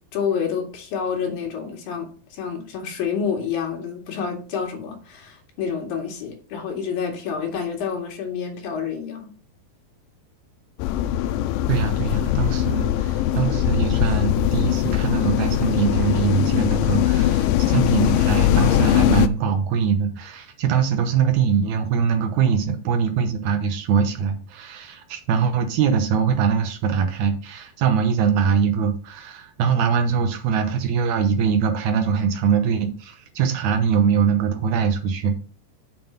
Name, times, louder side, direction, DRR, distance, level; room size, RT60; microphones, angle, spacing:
voice 1, 0.1-9.3, left 6 dB, 60° left, 3.7 m, -28 dB
sound 1, 10.8-19.3, left 12 dB, 90° left, 2.0 m, -21 dB
voice 2, 11.7-35.4, right 6 dB, 80° right, 1.7 m, -22 dB
7.6 x 5.4 x 5.7 m
omnidirectional pair, 4.7 m